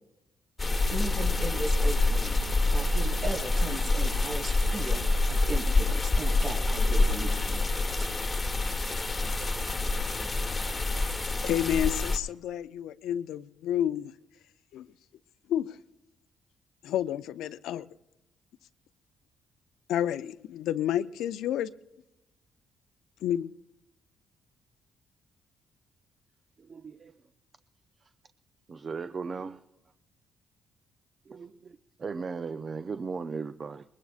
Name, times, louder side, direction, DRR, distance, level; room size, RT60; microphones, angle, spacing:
sound 1, 0.6-12.2, left 2 dB, 20° left, 1.2 m, -27 dB
voice 1, 0.9-8.1, right 2 dB, 55° right, 4.2 m, -38 dB
voice 2, 11.4-14.1 14.7-14.9 15.5-15.8 16.8-17.9 19.9-21.7 23.2-23.5, left 11 dB, 85° left, 0.5 m, -30 dB
voice 3, 26.6-27.1 28.7-29.6 31.3-33.8, right 5 dB, 40° right, 0.5 m, -37 dB
24.0 x 21.0 x 2.4 m
cardioid pair, 95°, 0 cm